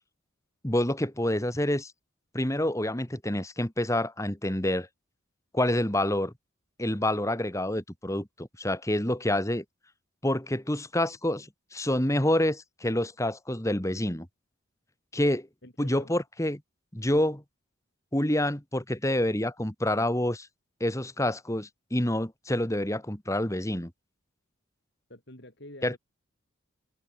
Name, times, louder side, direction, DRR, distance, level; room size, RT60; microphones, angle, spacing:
voice 1, 0.6-1.9 2.3-4.9 5.5-6.3 6.8-9.6 10.2-14.3 15.1-15.5 15.8-16.6 16.9-17.4 18.1-20.5 20.8-23.9 25.8-25.9, left 1 dB, 15° left, 2.1 m, -27 dB
voice 2, 15.6-16.1 25.1-26.0, left 1 dB, 55° left, 5.8 m, -47 dB
open air
head